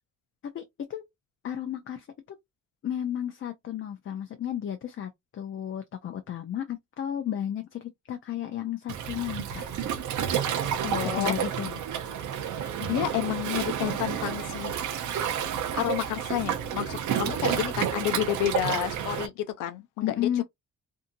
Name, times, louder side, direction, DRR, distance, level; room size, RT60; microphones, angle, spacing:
voice 1, 0.4-1.1 1.4-2.1 2.8-9.6 11.0-11.8 20.0-20.4, left 10 dB, 40° left, 0.5 m, -33 dB
Waves surf, 8.9-19.3, right 9 dB, 70° right, 0.7 m, -30 dB
voice 2, 10.8-11.3 12.8-14.7 15.7-20.4, left 13 dB, 90° left, 0.6 m, -30 dB
2.7 x 2.6 x 2.5 m
cardioid pair, 90°, 30 cm